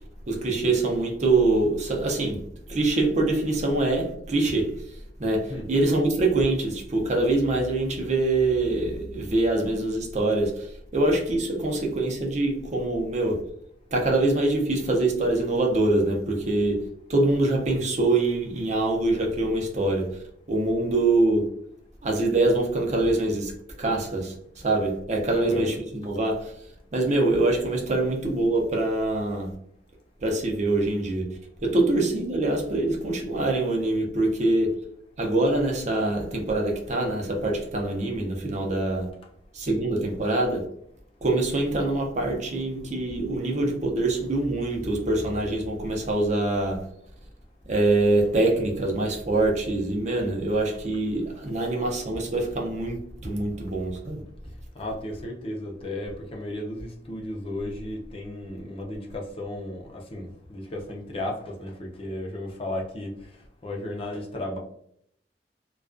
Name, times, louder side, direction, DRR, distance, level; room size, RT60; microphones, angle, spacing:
voice 1, 0.3-2.4 2.7-13.4 13.9-20.2 20.5-21.5 22.0-26.5 26.9-29.5 30.2-31.3 31.6-34.7 35.2-39.1 39.5-40.6 41.2-46.8 47.7-54.2, right 2 dB, 40° right, 0.6 m, -24 dB
voice 2, 25.3-25.7 54.7-63.2 63.6-64.6, left 1 dB, 35° left, 0.5 m, -34 dB
2.3 x 2.2 x 2.4 m
head